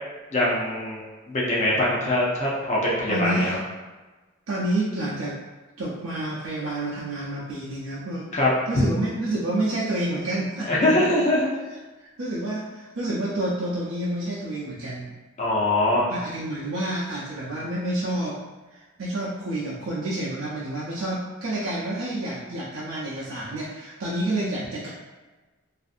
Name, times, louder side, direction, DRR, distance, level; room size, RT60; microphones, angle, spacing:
voice 1, 0.3-3.5 8.3-8.8 10.6-11.5 15.4-16.1, left 1 dB, 35° left, -6 dB, 0.6 m, -23 dB
voice 2, 3.1-3.6 4.5-5.4 5.8-8.3 8.7-10.7 12.2-15.1 16.1-18.4 18.7-24.9, right 1 dB, 80° right, -7 dB, 0.5 m, -29 dB
2.5 x 2.4 x 2.5 m, 1.2 s
head